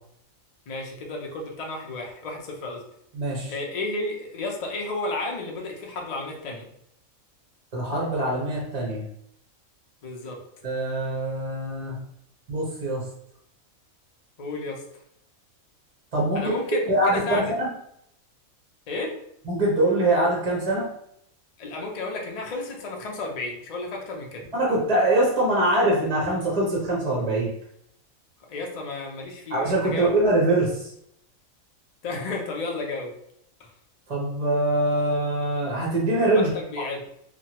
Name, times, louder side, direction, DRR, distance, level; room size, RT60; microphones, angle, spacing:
voice 1, 0.7-2.8 3.5-6.7 10.0-10.4 14.4-14.8 16.3-17.5 18.9-19.1 21.6-24.5 28.5-30.2 32.0-33.1 33.6-33.7 36.3-37.0, left 2 dB, 90° left, 0 dB, 0.3 m, -32 dB
voice 2, 3.1-3.5 7.7-9.0 10.6-12.0 12.5-13.0 16.1-16.4 16.9-17.7 19.5-20.9 24.5-27.5 29.5-30.9 34.1-36.5, right 1 dB, 40° right, -4 dB, 0.6 m, -23 dB
3.0 x 2.2 x 2.8 m, 0.74 s
omnidirectional pair, 1.4 m